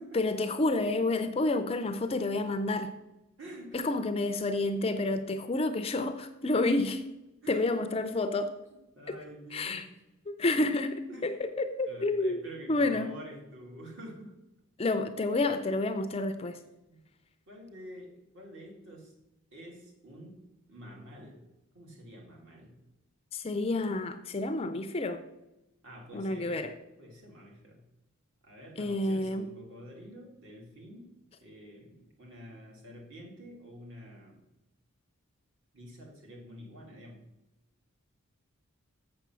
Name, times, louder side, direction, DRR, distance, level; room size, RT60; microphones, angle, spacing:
voice 1, 0.1-2.9 3.7-7.0 7.5-8.5 9.1-9.2 9.5-9.8 10.3-12.4 12.7-13.1 14.8-16.6 23.3-25.2 26.1-26.7 28.8-29.5, left 2 dB, 25° left, 9 dB, 0.4 m, -29 dB
voice 2, 3.4-3.9 7.4-7.7 8.7-9.8 11.1-11.3 11.9-14.4 16.9-17.0 17.5-19.1 19.5-20.4 20.7-21.4 21.7-22.8 25.8-26.7 27.0-27.9 28.4-31.1 31.4-34.4 35.7-37.2, equal, 55° right, 0 dB, 2.2 m, -48 dB
6.8 x 6.7 x 6.1 m, 0.96 s
head